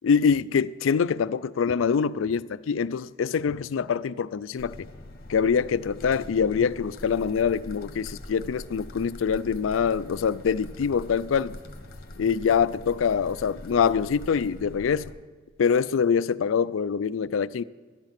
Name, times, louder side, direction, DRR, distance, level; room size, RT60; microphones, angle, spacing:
voice 1, 0.0-4.9 5.3-11.6 12.2-15.1 15.6-17.6, left 6 dB, 85° left, 0.4 m, -24 dB
sound 1, 4.6-15.1, left 1 dB, 50° left, 1.3 m, -43 dB
11.5 x 10.5 x 6.0 m
head